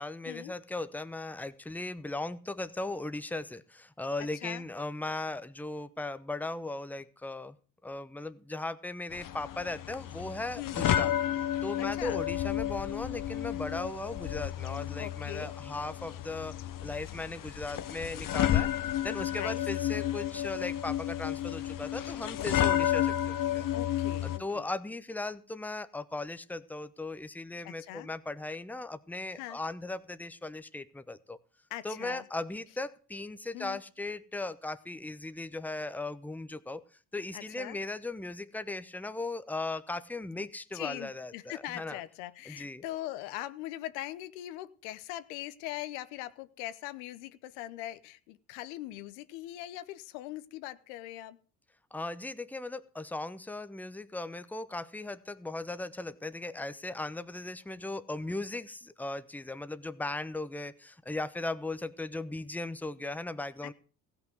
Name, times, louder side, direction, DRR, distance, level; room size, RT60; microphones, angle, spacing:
voice 1, 0.0-7.6 7.8-11.1 11.6-16.5 16.8-18.7 19.0-23.7 24.2-31.4 31.8-36.8 37.1-42.0 42.5-42.8 51.9-63.7, left 2 dB, 5° left, 0.9 m, -37 dB
sound 1, 9.1-24.4, left 11 dB, 50° left, 1.0 m, -32 dB
voice 2, 10.6-11.0 11.8-12.2 15.0-15.5 19.3-19.6 22.4-22.5 23.7-24.7 27.6-28.1 29.3-29.6 31.7-32.3 33.5-33.8 37.3-37.8 40.4-40.5 40.7-51.4 63.6-63.7, left 15 dB, 85° left, 0.9 m, -41 dB
16.0 x 5.9 x 7.8 m
hypercardioid pair, 65°, 42 cm